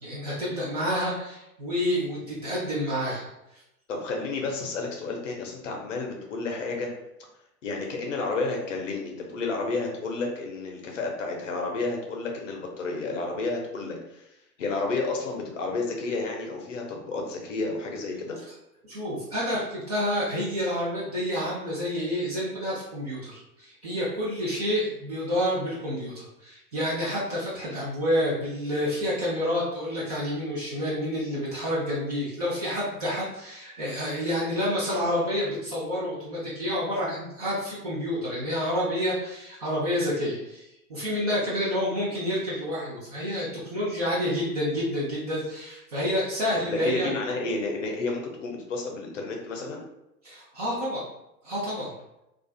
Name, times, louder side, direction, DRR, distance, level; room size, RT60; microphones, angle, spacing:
voice 1, 0.0-3.3 18.9-47.1 50.2-51.0 51.4-51.9, equal, 25° right, -7 dB, 0.4 m, -29 dB
voice 2, 3.9-6.9 7.6-14.3 14.6-18.4 46.7-49.8, left 3 dB, 50° left, 1 dB, 0.6 m, -31 dB
2.4 x 2.4 x 2.3 m, 0.88 s
figure-of-eight pair, 105°, 49 cm